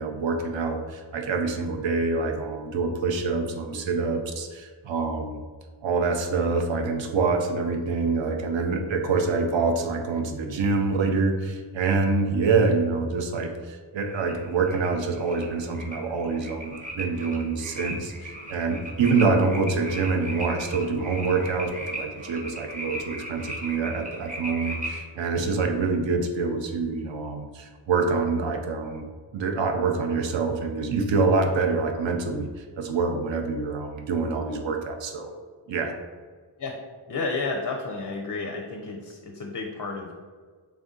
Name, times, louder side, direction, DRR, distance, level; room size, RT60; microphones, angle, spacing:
voice 1, 0.0-5.4 5.8-29.0 29.3-35.3 35.7-36.0, right 4 dB, 65° right, 4 dB, 0.6 m, -26 dB
sound 1, 14.0-25.0, right 1 dB, 20° right, 0.5 m, -38 dB
voice 2, 37.1-40.1, left 3 dB, 40° left, 2 dB, 0.4 m, -31 dB
3.4 x 2.6 x 3.6 m, 1.5 s
wide cardioid pair, 110°, 49 cm